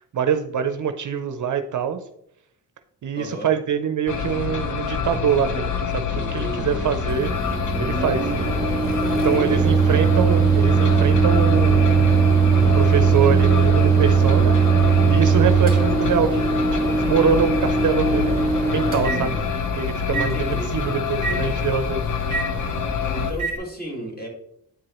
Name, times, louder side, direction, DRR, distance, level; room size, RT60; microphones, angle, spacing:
voice 1, 0.1-2.0 3.0-7.3 7.8-8.3 9.1-12.1 12.7-14.6 14.8-16.5 16.9-20.4 20.7-22.0, right 7 dB, 50° right, 8 dB, 0.6 m, -24 dB
voice 2, 3.1-3.5 6.1-6.9 9.2-9.7 20.1-21.7 23.1-24.3, equal, 25° left, 0 dB, 2.0 m, -34 dB
sound 1, 4.1-23.3, left 6 dB, 50° left, 0.8 m, -26 dB
Microwave oven, 7.1-23.6, right 5 dB, 20° right, 1.9 m, -20 dB
9.3 x 4.7 x 3.0 m, 0.75 s
cardioid pair, 90°, 39 cm